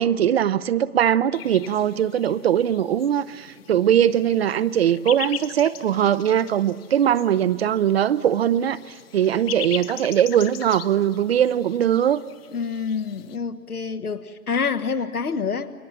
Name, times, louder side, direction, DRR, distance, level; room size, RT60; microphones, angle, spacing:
voice 1, 0.0-8.8 9.1-12.2, right 10 dB, 45° right, 16 dB, 0.6 m, -21 dB
sound 1, 1.3-13.4, left 11 dB, 40° left, 1.1 m, -40 dB
voice 2, 12.5-15.7, left 5 dB, 75° left, 9 dB, 1.5 m, -27 dB
29.5 x 22.0 x 7.3 m, 2.2 s
figure-of-eight pair, 115°, 45 cm